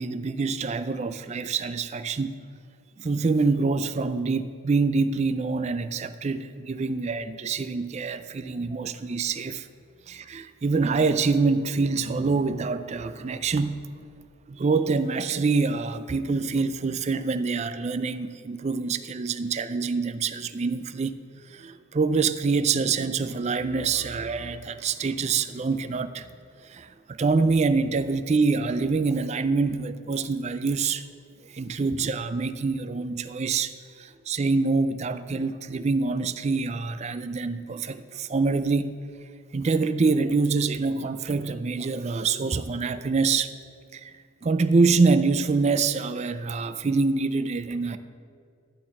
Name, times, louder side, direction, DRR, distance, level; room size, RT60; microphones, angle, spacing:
voice 1, 0.0-2.4 3.0-9.7 10.1-13.8 14.5-21.1 21.5-26.3 26.7-31.1 31.5-39.0 39.5-43.5 43.9-44.1 44.4-48.0, right 4 dB, 30° right, 0.3 m, -25 dB
11.5 x 5.8 x 7.4 m
head